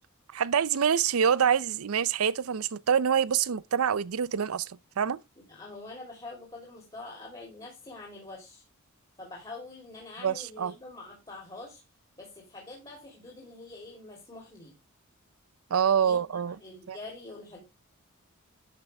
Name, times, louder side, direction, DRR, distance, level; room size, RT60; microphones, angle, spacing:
voice 1, 0.3-5.2 10.2-10.7 15.7-16.6 16.9-17.0, right 7 dB, 80° right, 0.5 m, -26 dB
voice 2, 5.5-8.6 9.2-11.8 12.2-14.7 15.9-17.6, left 2 dB, 25° left, 3.3 m, -45 dB
11.5 x 6.7 x 3.4 m
head